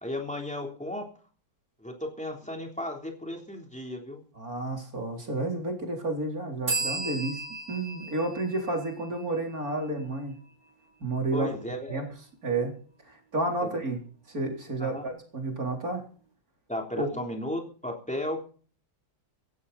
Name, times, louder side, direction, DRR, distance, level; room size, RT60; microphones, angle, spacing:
voice 1, 0.0-1.1 1.8-4.2 11.3-12.0 13.6-13.7 14.8-15.1 16.7-18.5, left 1 dB, 5° left, 1 dB, 3.4 m, -35 dB
voice 2, 4.3-7.4 7.7-10.3 11.0-11.5 11.9-12.1 12.4-12.7 13.1-14.0 14.3-16.0 17.0-17.1, right 2 dB, 45° right, 2 dB, 4.3 m, -31 dB
sound 1, 6.7-10.2, right 3 dB, 65° right, 5.2 m, -35 dB
17.0 x 16.0 x 4.2 m, 0.42 s
omnidirectional pair, 2.1 m